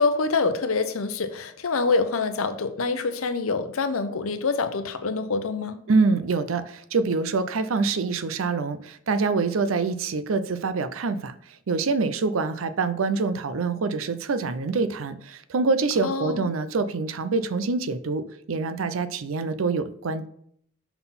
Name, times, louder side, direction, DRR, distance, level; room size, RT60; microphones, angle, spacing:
voice 1, 0.0-5.8 16.0-16.5, left 4 dB, 85° left, 0.7 m, -26 dB
voice 2, 5.9-11.3 11.7-20.3, right 4 dB, 70° right, 0.5 m, -25 dB
5.8 x 3.9 x 5.7 m
head